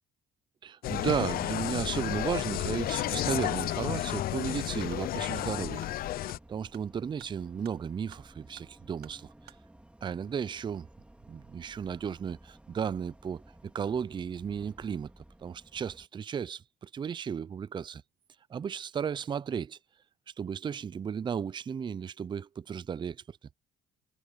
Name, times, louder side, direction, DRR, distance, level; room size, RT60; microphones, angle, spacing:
voice 1, 0.6-5.8 6.5-9.5 10.0-10.9 11.3-15.1 15.4-18.0 18.5-19.8 20.4-23.4, right 7 dB, 25° right, 0.5 m, -34 dB
Insect, 0.8-6.4, left 14 dB, 60° left, 0.5 m, -32 dB
sound 1, 4.5-9.6, right 14 dB, 75° right, 2.2 m, -57 dB
sound 2, 5.3-16.1, right 1 dB, 5° right, 2.0 m, -56 dB
cardioid pair, 110°, 17 cm